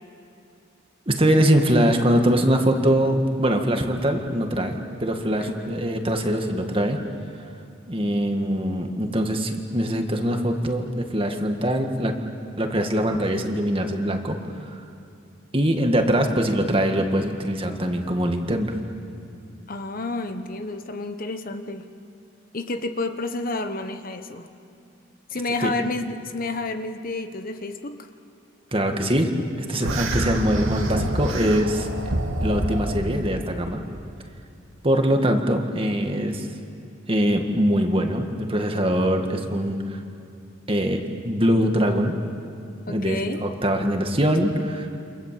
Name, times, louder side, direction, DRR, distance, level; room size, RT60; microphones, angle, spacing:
voice 1, 1.1-7.0 7.9-12.2 12.6-14.4 15.5-18.7 25.6-25.7 28.7-29.3 29.6-31.9 32.4-33.8 34.8-36.5 37.1-40.0 40.7-42.1 42.9-44.9, equal, 25° right, 4 dB, 1.9 m, -22 dB
voice 2, 5.4-5.8 19.7-21.9 22.5-24.5 25.3-28.0 42.9-43.5, left 2 dB, 45° left, 8 dB, 1.1 m, -30 dB
sound 1, 29.8-33.2, right 1 dB, 80° right, 2.6 m, -26 dB
29.0 x 26.5 x 7.7 m, 2.5 s
head